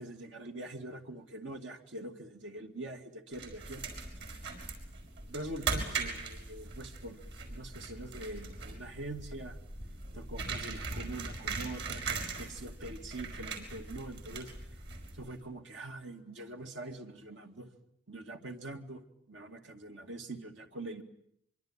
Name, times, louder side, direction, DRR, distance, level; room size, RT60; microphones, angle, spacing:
voice 1, 0.0-3.9 5.3-9.6 10.1-14.8 15.1-17.7 18.1-21.0, right 2 dB, 85° right, 5 dB, 2.4 m, -44 dB
sound 1, 3.3-15.4, right 4 dB, 65° right, 5.8 m, -40 dB
24.5 x 24.0 x 9.0 m, 0.70 s
head